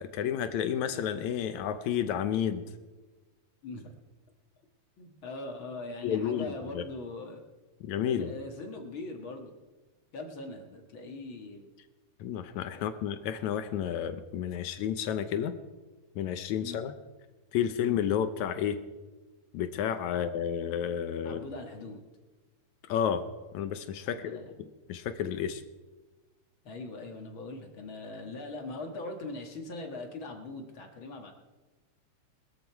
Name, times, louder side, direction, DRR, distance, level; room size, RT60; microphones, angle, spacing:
voice 1, 0.0-2.6 6.0-6.5 6.7-6.8 7.8-8.3 12.2-15.6 16.2-16.9 17.5-18.8 19.5-21.4 22.9-23.2 23.5-25.6, left 9 dB, 80° left, 10 dB, 2.1 m, -31 dB
voice 2, 5.0-7.4 8.1-9.5 10.1-11.7 12.7-12.9 16.6-16.9 17.6-17.8 20.1-20.2 21.3-22.0 24.1-24.5 26.6-31.3, left 2 dB, 50° left, 3 dB, 2.2 m, -41 dB
21.0 x 13.5 x 4.6 m, 1.2 s
omnidirectional pair, 3.3 m